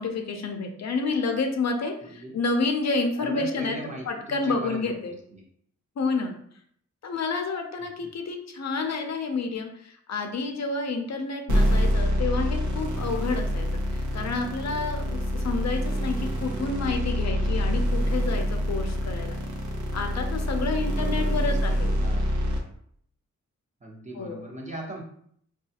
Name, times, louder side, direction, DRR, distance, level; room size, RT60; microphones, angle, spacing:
voice 1, 0.0-3.8 4.1-5.1 6.0-6.4 7.0-19.4 19.9-21.9 24.2-24.4, left 3 dB, 60° left, 4 dB, 0.5 m, -29 dB
voice 2, 2.0-2.4 3.2-4.9 5.3-5.4 8.0-8.1 20.6-22.3 23.8-25.0, right 1 dB, 25° right, -2 dB, 0.8 m, -39 dB
sound 1, 11.5-22.6, equal, 75° right, 0.8 m, -26 dB
4.7 x 2.3 x 2.7 m, 0.65 s
wide cardioid pair, 150°, 30 cm